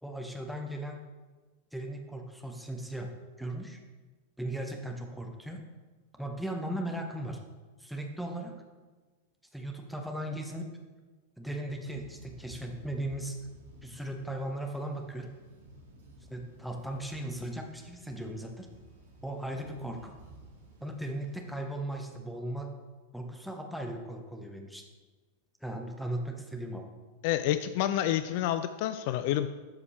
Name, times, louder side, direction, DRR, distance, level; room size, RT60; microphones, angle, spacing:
voice 1, 0.0-1.0 1.7-3.1 3.4-3.8 4.4-5.6 6.2-7.4 7.8-8.5 9.5-10.7 11.4-13.4 13.8-15.3 16.3-18.7 19.2-20.1 20.8-22.7 23.1-24.8 25.6-26.8, right 1 dB, ahead, 2 dB, 1.1 m, -37 dB
Thunder, 11.7-21.6, right 1 dB, 65° right, 1.7 m, -54 dB
voice 2, 27.2-29.5, left 12 dB, 50° left, 11 dB, 0.3 m, -28 dB
12.5 x 5.0 x 3.3 m, 1.3 s
figure-of-eight pair, 90°, 0 cm